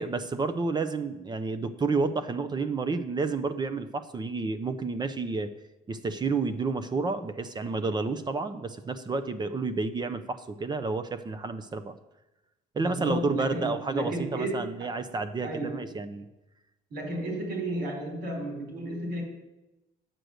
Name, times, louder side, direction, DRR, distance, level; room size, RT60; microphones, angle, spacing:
voice 1, 0.0-5.5 5.9-11.9 12.7-16.3, right 4 dB, 25° right, 10 dB, 0.6 m, -30 dB
voice 2, 12.8-14.9 15.4-15.8 16.9-19.2, right 1 dB, 70° right, 2 dB, 3.9 m, -33 dB
9.0 x 6.6 x 6.4 m, 0.98 s
cardioid pair, 110°, 17 cm